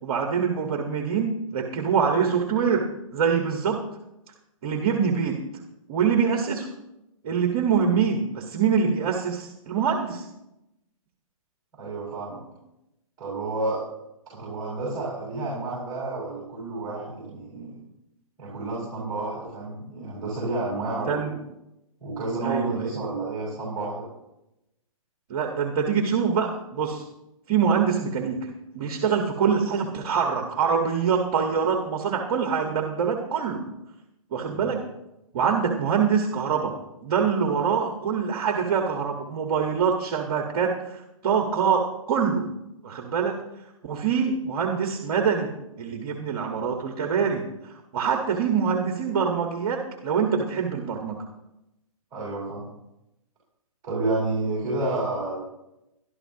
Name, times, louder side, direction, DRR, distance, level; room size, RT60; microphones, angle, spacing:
voice 1, 0.0-2.9 3.1-3.8 4.6-5.4 5.9-6.7 7.2-10.3 20.8-21.3 22.4-23.0 25.3-27.0 27.5-28.5 28.7-33.6 34.3-34.8 35.3-36.7 37.0-42.5 42.8-43.4 43.8-45.5 45.8-51.2, right 6 dB, 40° right, 3 dB, 1.5 m, -24 dB
voice 2, 11.7-12.4 13.2-13.8 14.3-17.8 18.4-21.3 22.0-24.0 34.5-34.8 52.1-52.6 53.8-55.4, right 2 dB, 20° right, -6 dB, 6.2 m, -30 dB
21.5 x 12.0 x 2.9 m, 0.89 s
hypercardioid pair, 145°, 18 cm